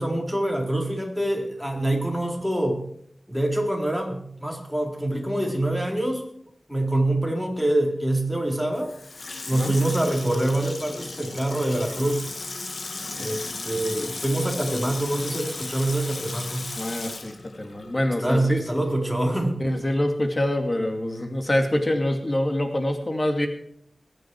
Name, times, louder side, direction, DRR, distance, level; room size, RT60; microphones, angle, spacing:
voice 1, 0.0-2.8 3.3-6.2 6.7-8.9 9.5-12.2 13.2-16.7 18.2-19.6, right 1 dB, 5° left, 1 dB, 4.0 m, -25 dB
Water tap faucet / Sink (filling or washing), 8.7-18.4 18.8-18.9, left 3 dB, 75° left, 1.8 m, -36 dB
voice 2, 16.8-18.6 19.6-23.5, left 1 dB, 40° left, 4 dB, 2.5 m, -25 dB
21.5 x 9.3 x 4.7 m, 0.68 s
wide cardioid pair, 50°, 0 cm